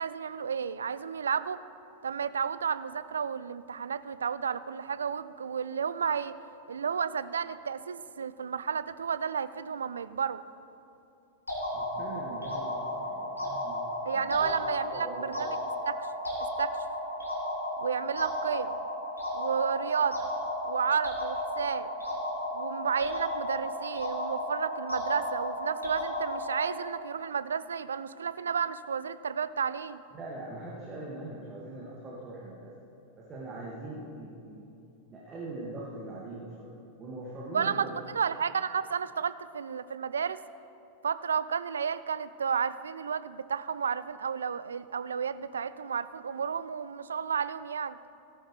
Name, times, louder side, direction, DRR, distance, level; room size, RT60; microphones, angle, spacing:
voice 1, 0.0-1.6 2.0-6.3 6.7-10.4 14.1-15.6 15.9-16.0 16.6-16.8 17.8-18.8 19.3-20.3 20.6-21.9 22.5-30.0 37.5-37.9 38.1-40.4 41.0-48.0, right 6 dB, 70° right, 15 dB, 0.4 m, -32 dB
sound 1, 11.5-26.9, left 1 dB, 80° left, 2.6 m, -34 dB
voice 2, 11.7-14.5 14.9-15.5 30.1-32.7 33.2-34.8 35.1-36.7 37.0-38.0, right 2 dB, 25° right, -5 dB, 1.9 m, -42 dB
17.5 x 10.0 x 3.2 m, 2.6 s
figure-of-eight pair, 90°, 0 cm